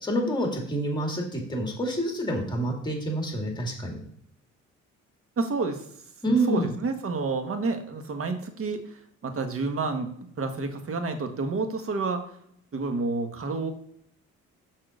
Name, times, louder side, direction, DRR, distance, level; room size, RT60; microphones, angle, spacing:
voice 1, 0.0-4.0 6.2-6.7, right 1 dB, 15° left, 1 dB, 2.4 m, -27 dB
voice 2, 5.4-5.9 6.3-12.3 12.7-13.7, right 3 dB, 45° right, 7 dB, 1.4 m, -30 dB
6.3 x 4.2 x 6.4 m, 0.69 s
cardioid pair, 90°, 30 cm